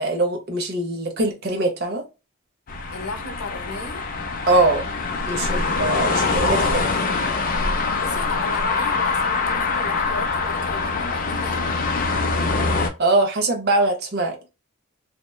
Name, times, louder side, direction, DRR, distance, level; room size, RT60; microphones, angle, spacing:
voice 1, 0.0-2.0 4.5-4.8 5.3-6.8 13.0-14.4, right 2 dB, 45° right, 0.7 m, -22 dB
sound 1, 2.7-12.9, left 4 dB, 40° left, 0.4 m, -24 dB
voice 2, 2.9-4.1 6.2-6.8 8.0-11.7, left 3 dB, 80° left, 0.7 m, -34 dB
2.9 x 2.1 x 2.2 m
head